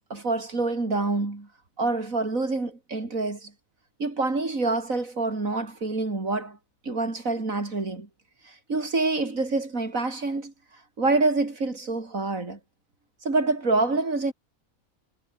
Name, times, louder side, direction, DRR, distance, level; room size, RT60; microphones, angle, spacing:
voice 1, 0.0-1.5 1.8-3.5 4.0-6.6 6.8-8.1 8.4-10.5 11.0-12.6 13.2-14.3, right 3 dB, 70° right, 4.5 m, -26 dB
omnidirectional pair, 1.4 m